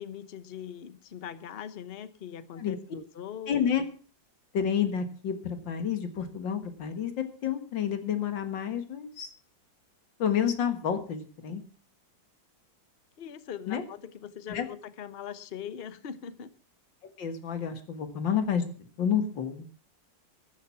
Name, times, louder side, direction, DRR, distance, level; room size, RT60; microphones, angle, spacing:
voice 1, 0.0-3.6 13.2-16.5, left 8 dB, 40° left, 14 dB, 0.9 m, -41 dB
voice 2, 3.5-3.8 4.5-9.3 10.2-11.6 13.7-13.8 14.5-14.7 17.2-19.7, left 8 dB, 85° left, 9 dB, 2.4 m, -29 dB
13.5 x 11.0 x 5.8 m, 0.39 s
omnidirectional pair, 2.0 m